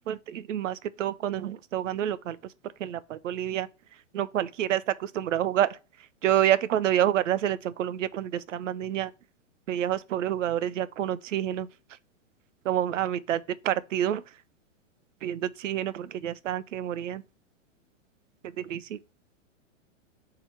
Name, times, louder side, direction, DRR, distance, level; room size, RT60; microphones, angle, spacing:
voice 1, 0.1-2.4 2.8-3.7 4.1-5.7 6.2-9.1 9.7-11.7 12.7-13.4 13.6-14.2 15.2-17.2 18.6-19.0, right 11 dB, 75° right, 0.7 m, -28 dB
4.4 x 3.9 x 5.5 m
hypercardioid pair, 125°, 37 cm